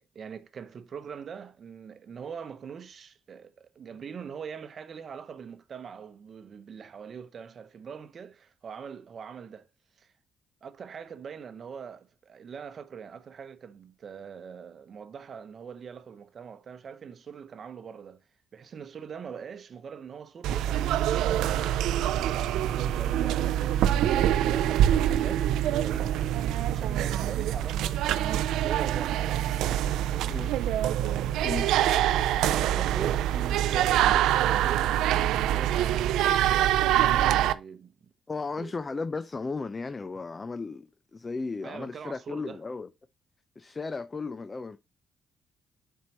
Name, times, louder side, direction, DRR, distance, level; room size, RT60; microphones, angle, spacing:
voice 1, 0.0-9.7 10.0-10.1 10.6-18.2 18.5-26.4 26.7-29.3 30.1-30.4 32.1-38.1 38.6-38.7 41.6-42.6, right 6 dB, 50° right, 0.8 m, -42 dB
sound 1, 20.4-37.5, right 12 dB, 90° right, 0.4 m, -25 dB
voice 2, 38.3-42.9 43.6-44.8, left 4 dB, 30° left, 0.4 m, -35 dB
7.4 x 4.6 x 2.9 m
cardioid pair, 90°, 0 cm